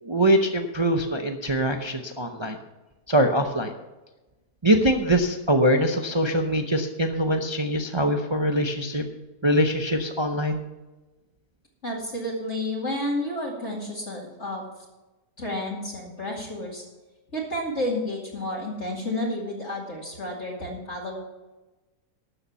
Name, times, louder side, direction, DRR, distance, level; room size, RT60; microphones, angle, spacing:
voice 1, 0.0-2.6 3.1-3.7 4.6-9.0 9.4-10.6, equal, 35° right, 5 dB, 0.4 m, -23 dB
voice 2, 11.8-14.6 15.4-16.8 17.3-21.2, left 1 dB, 45° left, -3 dB, 2.5 m, -31 dB
12.5 x 7.1 x 7.0 m, 1.1 s
omnidirectional pair, 1.8 m